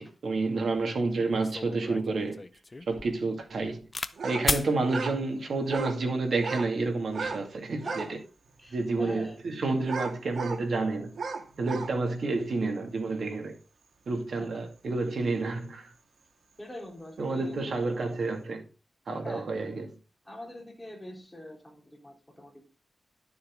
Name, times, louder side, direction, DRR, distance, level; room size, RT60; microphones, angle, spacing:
voice 1, 0.0-2.4 2.9-3.8 4.2-8.1 8.7-11.1 11.6-13.5 14.1-15.9 17.2-18.6 19.1-19.9, right 3 dB, 60° right, 2.4 m, -29 dB
sound 1, 0.8-0.9 1.3-4.1 4.4-4.7 5.6-5.9, left 2 dB, 25° left, 0.5 m, -34 dB
sound 2, 4.2-4.5 4.8-5.2 5.6-6.0 6.3-6.7 7.1-7.4 7.8-8.1 8.7-8.8 9.8-10.6 11.1-11.9, right 4 dB, 85° right, 1.7 m, -35 dB
voice 2, 7.8-8.2 8.6-9.4 14.4-14.6 16.6-17.6 19.2-19.5 20.2-22.6, left 1 dB, 10° left, 3.7 m, -44 dB
11.0 x 7.2 x 3.8 m
wide cardioid pair, 175°, 0 cm